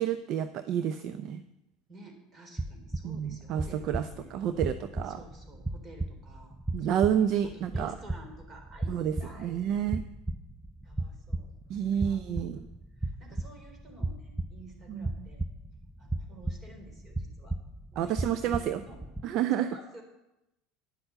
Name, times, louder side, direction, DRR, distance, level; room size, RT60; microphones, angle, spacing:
voice 1, 0.0-1.4 3.0-5.2 6.7-7.9 8.9-10.0 11.7-12.6 14.9-15.1 18.0-18.8 19.2-19.7, right 9 dB, 55° right, 11 dB, 0.6 m, -29 dB
voice 2, 1.9-4.4 5.0-10.0 10.8-12.5 13.0-15.4 16.0-17.6 17.9-19.0 19.6-20.0, right 2 dB, 35° right, 4 dB, 3.6 m, -52 dB
sound 1, 2.6-19.2, right 2 dB, 5° right, 0.6 m, -36 dB
9.9 x 7.9 x 7.8 m, 0.91 s
hypercardioid pair, 80°, 0 cm